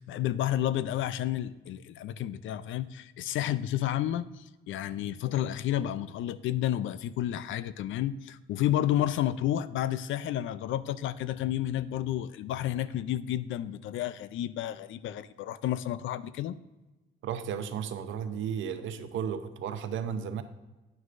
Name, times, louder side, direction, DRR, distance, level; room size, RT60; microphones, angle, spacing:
voice 1, 0.0-16.6, left 12 dB, 75° left, 16 dB, 0.5 m, -31 dB
voice 2, 17.2-20.4, right 8 dB, 75° right, 9 dB, 0.8 m, -34 dB
9.4 x 9.3 x 2.6 m, 1.1 s
cardioid pair, 90°, 20 cm